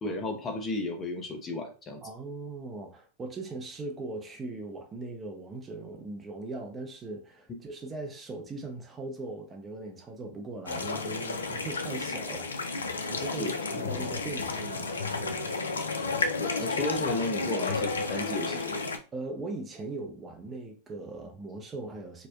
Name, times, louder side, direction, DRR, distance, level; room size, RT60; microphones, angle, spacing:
voice 1, 0.0-2.0 7.5-7.6 13.4-14.1 16.4-18.8, left 2 dB, 25° left, 0.6 m, -34 dB
voice 2, 2.0-15.5 19.1-22.3, right 2 dB, 25° right, 0.5 m, -40 dB
sound 1, 10.7-19.0, left 3 dB, 80° left, 0.3 m, -32 dB
2.8 x 2.0 x 2.3 m
figure-of-eight pair, 90°, 0 cm